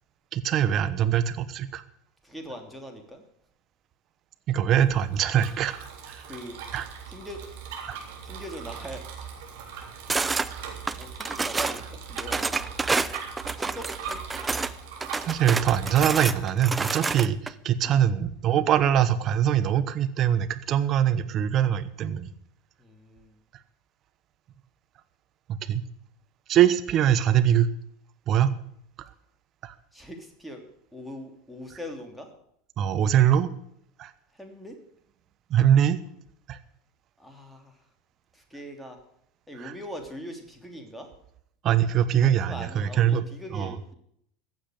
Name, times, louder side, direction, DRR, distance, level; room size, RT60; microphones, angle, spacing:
voice 1, 0.3-1.8 4.5-5.7 6.1-6.2 6.7-6.9 7.9-8.0 10.2-10.3 15.2-22.3 25.5-25.9 26.5-27.7 28.3-28.5 29.6-29.7 32.8-33.5 34.0-34.1 35.5-36.0 36.5-36.6 39.6-39.7 41.6-43.3 43.5-43.7, right 10 dB, 40° right, 12 dB, 1.1 m, -23 dB
voice 2, 2.2-3.2 6.2-6.6 7.1-7.4 8.2-9.0 10.3-10.6 11.0-12.7 13.6-14.2 17.8-18.0 22.8-23.4 29.9-30.6 30.9-32.3 34.3-34.7 37.2-37.8 38.3-39.0 39.5-41.1 42.2-43.9, equal, ahead, 3 dB, 3.1 m, -41 dB
Bicycle, 4.7-16.4, right 6 dB, 65° right, 3.6 m, -40 dB
sound 1, 10.1-10.5 10.9-11.8 12.2-14.7 15.0-17.5, right 4 dB, 15° right, 0.7 m, -28 dB
15.0 x 7.7 x 9.4 m, 0.72 s
figure-of-eight pair, 80°, 0 cm